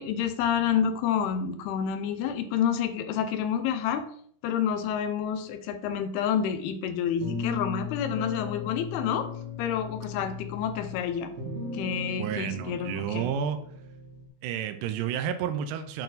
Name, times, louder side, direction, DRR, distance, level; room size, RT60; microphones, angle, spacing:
voice 1, 0.0-4.0 4.4-9.3 9.6-11.3 11.7-13.3, left 8 dB, 85° left, 8 dB, 2.7 m, -29 dB
sound 1, 7.2-14.3, left 5 dB, 55° right, 2.3 m, -37 dB
voice 2, 12.2-13.6 14.4-16.0, right 8 dB, 80° right, 8 dB, 2.0 m, -31 dB
8.7 x 4.2 x 4.0 m, 0.62 s
omnidirectional pair, 4.5 m